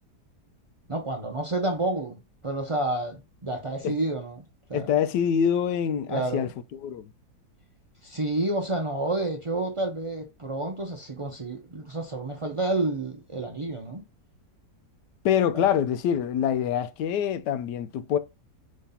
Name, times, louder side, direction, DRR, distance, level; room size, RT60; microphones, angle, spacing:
voice 1, 0.9-4.4 4.7-4.9 6.1-6.5 8.0-14.0 15.5-15.7, right 2 dB, 40° right, 0.4 m, -29 dB
voice 2, 4.7-6.5 6.8-7.0 15.2-18.2, left 8 dB, 80° left, 1.2 m, -25 dB
5.3 x 3.3 x 5.6 m
omnidirectional pair, 1.8 m